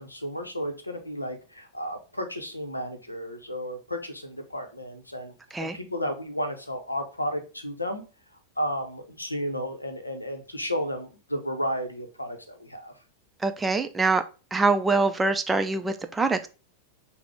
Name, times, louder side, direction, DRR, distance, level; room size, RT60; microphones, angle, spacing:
voice 1, 0.0-8.0 8.6-12.9, equal, 85° left, 6 dB, 0.7 m, -33 dB
voice 2, 13.4-14.2 14.5-16.5, right 3 dB, 10° right, 7 dB, 0.4 m, -24 dB
5.8 x 2.1 x 3.3 m, 0.33 s
figure-of-eight pair, 90°, 0 cm